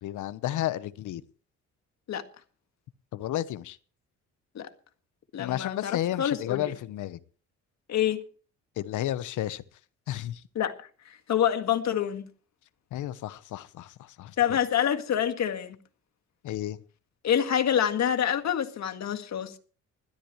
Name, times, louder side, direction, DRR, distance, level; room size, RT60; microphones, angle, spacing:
voice 1, 0.0-1.2 3.1-3.8 5.4-7.2 8.8-9.6 10.1-10.4 12.9-14.6 16.4-16.8, left 13 dB, 80° left, 1.0 m, -32 dB
voice 2, 5.3-6.7 7.9-8.2 10.6-10.7 11.3-12.3 14.4-15.8 17.2-19.5, left 9 dB, 65° left, 1.9 m, -26 dB
20.0 x 13.5 x 3.2 m
cardioid pair, 90°, 30 cm